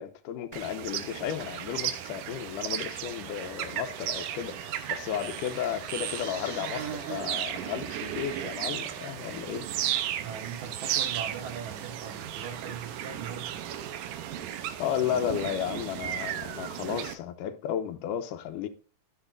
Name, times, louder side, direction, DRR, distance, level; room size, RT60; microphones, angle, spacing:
voice 1, 0.0-9.7 14.8-18.7, left 10 dB, 85° left, 2.4 m, -33 dB
sound 1, 0.5-17.1, right 11 dB, 90° right, 2.4 m, -35 dB
sound 2, 1.4-16.7, right 2 dB, 35° right, 3.5 m, -51 dB
voice 2, 10.2-13.7, right 7 dB, 70° right, 2.8 m, -40 dB
12.0 x 7.9 x 2.5 m
omnidirectional pair, 3.6 m